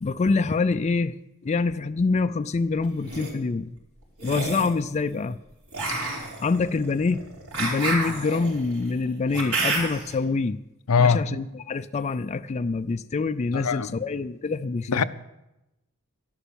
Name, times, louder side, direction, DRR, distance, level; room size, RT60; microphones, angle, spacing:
voice 1, 0.0-3.8 4.2-5.4 6.4-7.2 7.5-10.6 11.0-15.0, left 4 dB, 30° left, 0.4 m, -26 dB
sound 1, 2.8-3.3 4.2-4.8 5.7-10.1, right 2 dB, 70° right, 4.5 m, -30 dB
voice 2, 10.9-11.3 13.5-13.9 14.9-15.0, left 5 dB, 85° left, 0.6 m, -21 dB
12.5 x 11.5 x 7.0 m
head